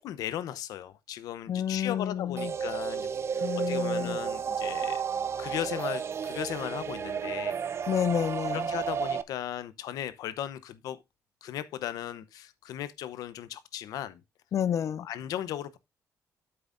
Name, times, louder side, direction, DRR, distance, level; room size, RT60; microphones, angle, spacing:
voice 1, 0.0-5.0 5.4-7.6 8.5-11.0 11.4-14.2 15.0-15.8, left 11 dB, 90° left, 0.8 m, -37 dB
voice 2, 1.5-2.5 3.4-4.2 7.9-8.7 14.5-15.1, left 9 dB, 55° left, 0.4 m, -29 dB
sound 1, 2.4-9.2, right 7 dB, 45° right, 0.6 m, -32 dB
9.4 x 7.9 x 2.5 m
cardioid pair, 105°, 6 cm